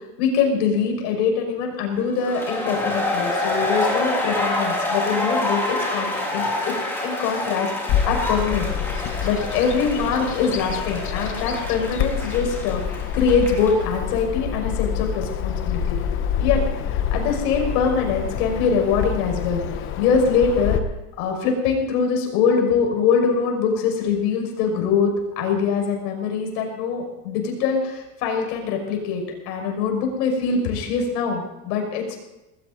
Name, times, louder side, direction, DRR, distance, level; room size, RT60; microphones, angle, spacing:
voice 1, 0.2-6.7 7.0-7.7 8.1-16.0 16.4-19.6 20.0-20.8 21.2-32.2, left 5 dB, 90° left, 1 dB, 5.8 m, -23 dB
sound 1, 2.2-13.8, left 2 dB, 5° left, 3.4 m, -27 dB
Bird vocalization bird call bird song, 7.9-20.8, left 8 dB, 25° left, 0.8 m, -27 dB
19.5 x 17.0 x 4.0 m, 0.98 s
cardioid pair, 170°, 47 cm